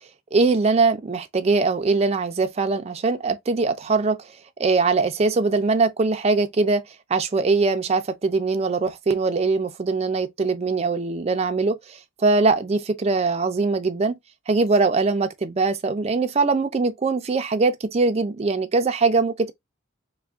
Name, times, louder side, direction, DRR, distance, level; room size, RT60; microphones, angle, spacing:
voice 1, 0.3-4.3 4.6-6.8 7.1-14.2 14.5-19.5, right 3 dB, 30° right, 0.4 m, -22 dB
2.4 x 2.1 x 3.4 m
head